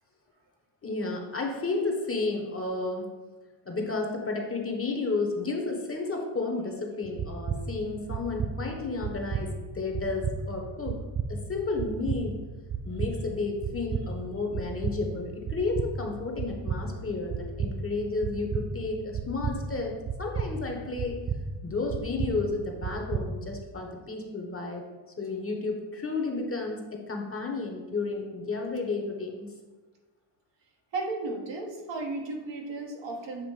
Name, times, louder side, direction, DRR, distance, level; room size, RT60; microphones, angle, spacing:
voice 1, 0.8-3.1 3.6-11.0 11.3-12.4 12.8-21.2 21.6-24.8 25.2-29.5, left 3 dB, 30° left, 2 dB, 1.1 m, -32 dB
sound 1, 7.0-23.7, right 5 dB, 30° right, 0.4 m, -34 dB
voice 2, 30.9-33.5, right 3 dB, 65° right, 1 dB, 1.2 m, -34 dB
7.4 x 2.9 x 4.9 m, 1.3 s
cardioid pair, 90°, 47 cm